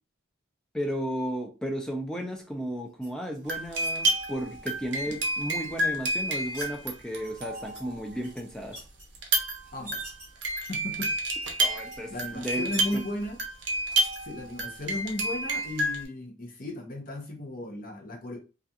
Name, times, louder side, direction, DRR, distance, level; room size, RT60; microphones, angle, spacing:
voice 1, 0.7-8.8 11.6-13.0, equal, 5° left, 2 dB, 0.4 m, -34 dB
sound 1, 3.0-4.1 5.8-6.7 7.2-7.8 8.2-9.0 9.6-10.3 10.6-11.0 11.4-11.5 11.8-12.0 12.3-13.3 13.9-14.2, right 1 dB, 15° right, 1.3 m, -45 dB
sound 2, 3.5-8.0 9.1-16.0, right 1 dB, 60° right, 0.6 m, -30 dB
voice 2, 10.7-11.1 12.1-13.4 14.2-18.4, left 1 dB, 45° left, 0 dB, 0.7 m, -35 dB
2.4 x 2.3 x 2.7 m, 0.31 s
head